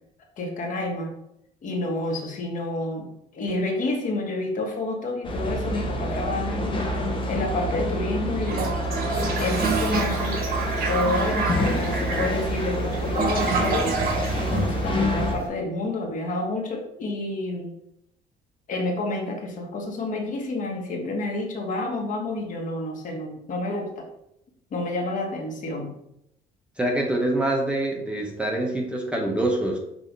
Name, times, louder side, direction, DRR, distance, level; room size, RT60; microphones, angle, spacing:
voice 1, 0.4-1.1 1.6-6.8 7.3-8.7 9.4-10.4 10.9-13.9 14.3-17.7 18.7-24.1 24.7-25.9, left 2 dB, 50° left, 1 dB, 1.5 m, -29 dB
sound 1, 5.2-15.3, equal, 30° left, 1.1 m, -27 dB
Toilet flush, 8.4-15.4, right 4 dB, 60° right, 1.4 m, -28 dB
voice 2, 26.8-29.8, right 1 dB, 5° right, 0 dB, 1.0 m, -25 dB
6.3 x 2.9 x 5.2 m, 0.78 s
cardioid pair, 110°, 17 cm